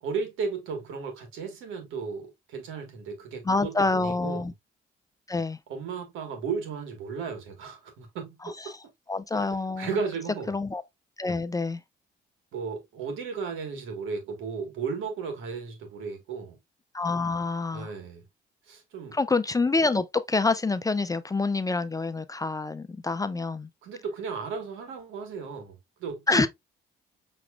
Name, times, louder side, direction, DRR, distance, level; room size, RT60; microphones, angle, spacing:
voice 1, 0.0-4.5 5.7-8.4 9.3-9.5 9.8-10.5 12.5-16.6 17.7-18.2 18.7-19.2 23.8-26.5, right 5 dB, 90° right, 1.5 m, -35 dB
voice 2, 3.4-4.5 5.3-5.6 8.4-8.8 9.1-10.0 10.5-10.8 11.2-11.8 16.9-17.9 19.1-23.7 26.3-26.5, left 3 dB, 15° left, 0.4 m, -27 dB
6.0 x 3.1 x 2.3 m
cardioid pair, 90°, 20 cm